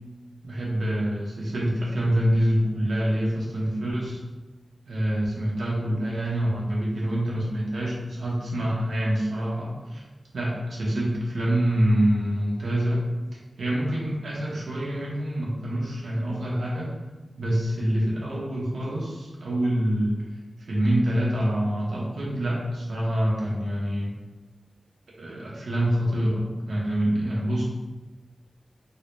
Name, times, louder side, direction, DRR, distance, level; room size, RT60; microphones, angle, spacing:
voice 1, 0.4-4.2 4.9-10.0 10.3-13.0 13.3-16.9 17.4-20.2 20.6-24.1 25.2-27.6, right 1 dB, 90° right, -5 dB, 0.9 m, -26 dB
3.8 x 2.1 x 3.0 m, 1.2 s
wide cardioid pair, 80°, 0 cm